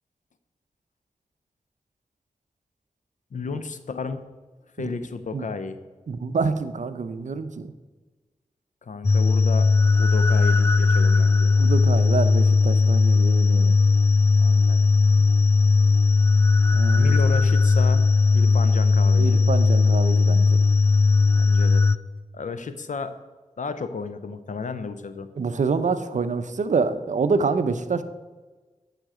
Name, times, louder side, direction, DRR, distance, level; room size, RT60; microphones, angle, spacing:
voice 1, 3.3-4.3 4.8-5.8 8.8-9.7 10.0-11.5 14.4-14.8 16.9-19.4 21.3-21.9 22.3-23.2 23.6-25.3, left 4 dB, 70° left, 11 dB, 0.7 m, -33 dB
voice 2, 6.1-7.7 11.6-13.8 16.7-17.1 19.2-20.6 25.4-28.0, right 4 dB, 65° right, 11 dB, 0.6 m, -26 dB
sound 1, 9.0-22.0, left 4 dB, 20° left, 0.3 m, -18 dB
9.1 x 5.7 x 5.0 m, 1.3 s
cardioid pair, 60°, 14 cm